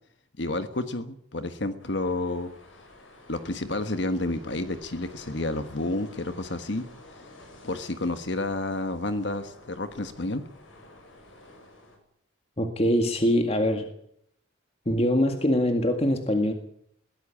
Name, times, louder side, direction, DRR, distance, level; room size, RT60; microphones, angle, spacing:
voice 1, 0.4-2.5 3.3-6.8 7.6-10.4, left 2 dB, 65° left, 9 dB, 1.4 m, -30 dB
sound 1, 1.8-12.0, left 2 dB, 85° left, 7.5 m, -51 dB
voice 2, 12.6-13.9 14.9-16.5, equal, 30° left, 5 dB, 1.9 m, -23 dB
22.5 x 16.5 x 8.6 m, 0.70 s
head